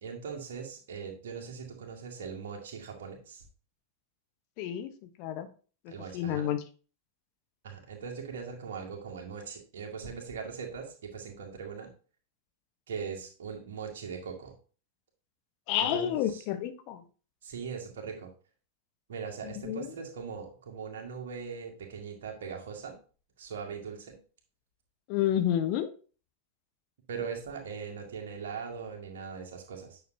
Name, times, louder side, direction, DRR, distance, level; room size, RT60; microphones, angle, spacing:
voice 1, 0.0-3.4 5.9-6.5 7.6-11.9 12.9-14.5 15.8-16.4 17.4-18.3 19.1-23.0 23.4-24.2 27.1-30.0, right 6 dB, 60° right, 1 dB, 2.0 m, -40 dB
voice 2, 4.6-4.9 5.2-5.5 6.1-6.6 15.7-17.0 19.4-19.9 25.1-25.9, left 11 dB, 45° left, 9 dB, 1.0 m, -29 dB
9.2 x 6.4 x 2.7 m, 0.38 s
figure-of-eight pair, 90°, 0 cm